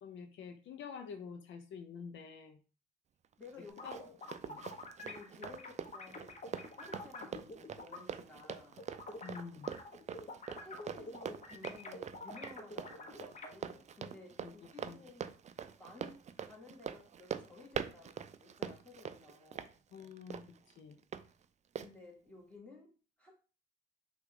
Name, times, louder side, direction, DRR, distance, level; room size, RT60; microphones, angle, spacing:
voice 1, 0.0-2.6 3.8-4.0 4.4-4.7 9.2-9.7 14.4-15.0 19.9-21.0, left 6 dB, 70° left, 0.6 m, -48 dB
voice 2, 3.4-4.2 5.0-6.4 6.8-8.9 10.6-15.3 15.8-19.7 21.8-23.3, left 3 dB, 5° left, 1.9 m, -55 dB
Run, 3.4-21.2 21.8-21.9, right 8 dB, 35° right, 0.4 m, -44 dB
sound 1, 3.7-8.0 8.4-13.5, left 2 dB, 40° left, 1.0 m, -47 dB
5.8 x 2.5 x 3.6 m
cardioid pair, 90°, 20 cm